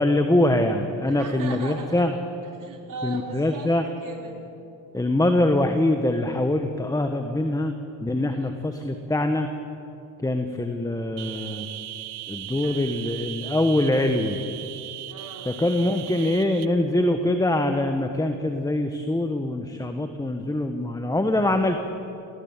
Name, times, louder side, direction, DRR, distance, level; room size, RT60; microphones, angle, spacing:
voice 1, 0.0-2.1 3.0-3.8 4.9-7.7 8.0-9.5 10.2-11.7 12.3-14.4 15.4-21.8, left 1 dB, 10° left, 6 dB, 1.4 m, -23 dB
voice 2, 1.1-2.0 2.6-4.4 8.3-8.6 12.5-12.8 15.1-15.5, right 4 dB, 50° right, 1 dB, 4.5 m, -38 dB
sound 1, 11.2-16.6, right 15 dB, 75° right, 0.9 m, -38 dB
21.5 x 16.0 x 9.1 m, 2.7 s
supercardioid pair, 80°, 41 cm